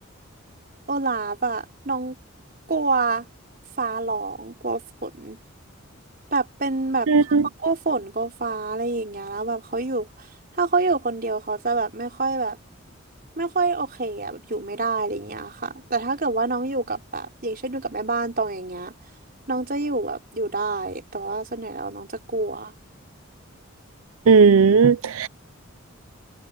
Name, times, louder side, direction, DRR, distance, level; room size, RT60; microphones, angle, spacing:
voice 1, 0.9-2.1 2.7-3.3 3.8-5.4 6.3-10.1 10.6-12.6 13.4-18.9 19.5-22.7, right 3 dB, 45° right, 4.2 m, -27 dB
voice 2, 7.1-7.5 24.3-25.3, right 5 dB, 85° right, 0.5 m, -15 dB
head